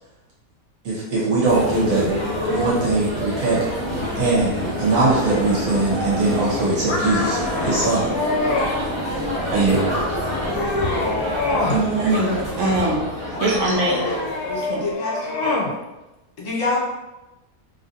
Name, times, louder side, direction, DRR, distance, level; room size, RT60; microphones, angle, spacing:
voice 1, 0.8-2.1 2.4-3.7 4.2-8.1 9.5-9.9, right 3 dB, 80° right, -7 dB, 1.4 m, -21 dB
sound 1, 1.4-14.9, left 1 dB, 20° left, 1.0 m, -27 dB
sound 2, 3.0-7.9, left 1 dB, 20° right, 1.0 m, -33 dB
sound 3, 6.9-8.8 9.3-9.8 10.2-11.8 12.1-12.8 13.4-15.7, left 2 dB, 80° left, 1.1 m, -26 dB
voice 2, 11.7-13.0 13.4-14.1 14.7-14.8, right 2 dB, 65° right, -2 dB, 0.8 m, -21 dB
voice 3, 13.3-13.8 14.2-15.4 16.4-16.8, left 3 dB, 60° left, -5 dB, 1.3 m, -28 dB
3.1 x 2.5 x 2.5 m, 1.0 s
omnidirectional pair, 1.6 m